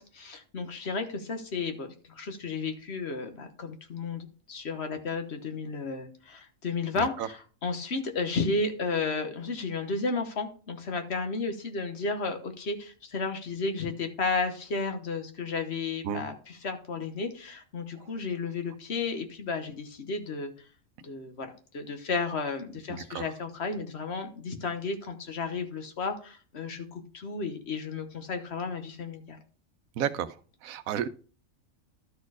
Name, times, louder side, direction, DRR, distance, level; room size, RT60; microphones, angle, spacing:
voice 1, 0.0-20.5 21.0-29.4, left 4 dB, 55° left, 6 dB, 1.3 m, -33 dB
voice 2, 6.9-7.3 16.0-16.2 18.0-18.1 22.9-23.2 30.0-30.3 30.6-31.1, right 9 dB, 85° right, 14 dB, 1.0 m, -32 dB
12.0 x 4.4 x 4.8 m, 0.40 s
omnidirectional pair, 1.4 m